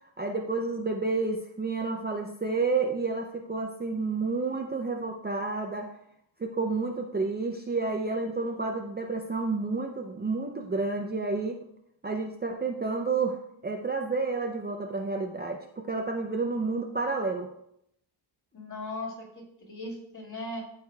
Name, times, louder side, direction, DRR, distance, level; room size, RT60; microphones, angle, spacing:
voice 1, 0.2-5.9 6.4-11.6 12.0-17.5, right 3 dB, 20° right, 2 dB, 0.5 m, -30 dB
voice 2, 18.5-20.6, left 2 dB, 40° left, -3 dB, 2.3 m, -38 dB
13.5 x 4.9 x 2.3 m, 0.75 s
wide cardioid pair, 125°, 48 cm